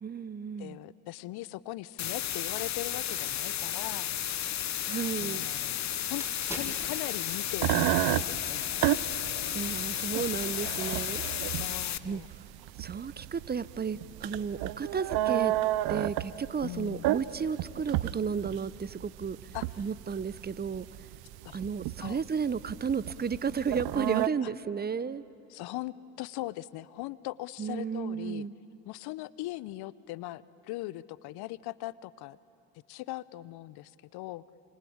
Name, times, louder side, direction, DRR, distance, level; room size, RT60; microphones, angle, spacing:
voice 1, 0.0-0.8 4.9-5.5 9.5-11.2 12.0-12.2 12.8-15.5 15.9-19.4 19.8-20.9 21.5-25.2 27.6-28.5, right 6 dB, 25° right, 18 dB, 0.8 m, -33 dB
voice 2, 0.6-4.1 5.2-6.2 6.5-8.8 11.6-12.3 16.6-17.1 19.5-19.9 21.4-22.2 24.4-24.5 25.5-28.5 28.8-32.4 32.9-34.4, left 17 dB, 65° left, 19 dB, 0.8 m, -40 dB
sound 1, 2.0-12.0, left 11 dB, 40° left, 0.9 m, -33 dB
sound 2, 6.2-9.2 9.5-9.7, equal, 5° right, 6.0 m, -45 dB
sound 3, 7.5-24.3, right 15 dB, 65° right, 0.8 m, -32 dB
26.5 x 25.5 x 8.7 m, 2.9 s
hypercardioid pair, 65°, 41 cm